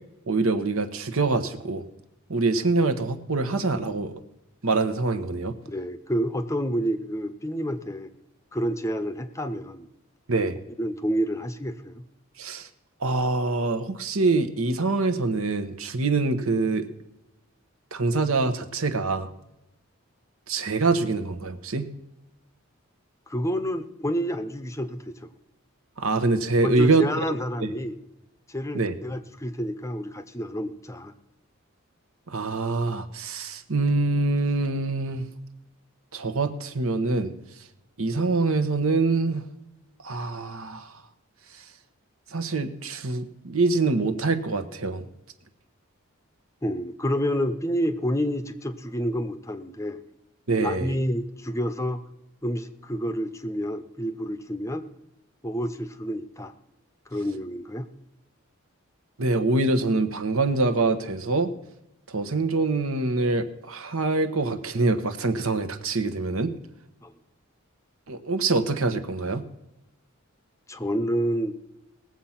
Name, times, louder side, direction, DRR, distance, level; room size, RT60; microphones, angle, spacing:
voice 1, 0.3-1.8 2.3-4.1 4.6-5.5 10.3-10.6 12.4-12.7 13.0-16.9 17.9-19.3 20.5-21.9 26.0-27.4 28.7-28.9 32.3-35.3 36.1-37.3 38.0-39.4 40.0-41.0 42.3-45.0 50.5-50.9 59.2-61.5 62.1-66.5 68.1-69.4, right 3 dB, 80° right, 9 dB, 1.1 m, -25 dB
voice 2, 5.6-8.1 8.5-9.9 10.8-12.0 23.3-25.3 26.6-28.0 28.5-31.1 46.6-50.0 50.6-52.0 52.4-54.8 55.4-56.5 57.1-57.9 67.0-67.1 70.7-71.6, equal, 15° left, 10 dB, 0.7 m, -29 dB
19.0 x 7.6 x 5.8 m, 0.91 s
head